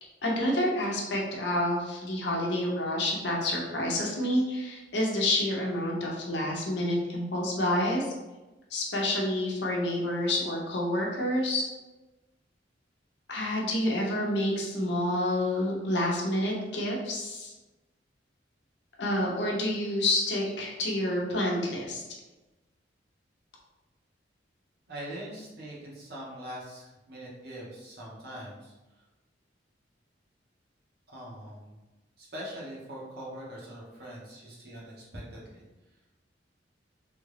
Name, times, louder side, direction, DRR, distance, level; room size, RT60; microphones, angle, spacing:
voice 1, 0.2-8.1 8.7-11.7 13.3-17.5 19.0-22.0, left 1 dB, 65° left, -2 dB, 0.8 m, -28 dB
voice 2, 24.9-28.7 31.1-31.7 32.2-35.6, equal, 55° right, -6 dB, 1.2 m, -42 dB
3.5 x 2.4 x 3.3 m, 1.1 s
head